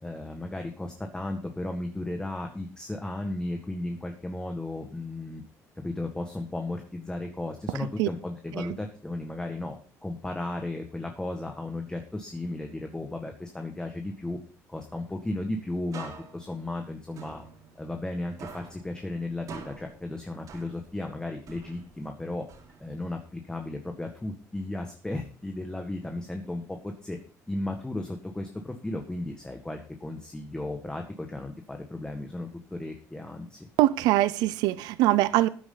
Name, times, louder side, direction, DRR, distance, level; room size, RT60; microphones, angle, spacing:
voice 1, 0.0-5.4 5.8-9.8 10.0-14.4 14.7-17.4 17.8-22.4 22.8-27.2 27.5-33.7, left 2 dB, 10° left, 1.8 m, -35 dB
sound 1, 15.9-18.1 18.4-21.1 21.5-23.1, right 5 dB, 60° right, 3.9 m, -46 dB
voice 2, 33.8-35.5, right 16 dB, 90° right, 0.6 m, -22 dB
13.5 x 9.7 x 4.0 m
cardioid pair, 95°, 7 cm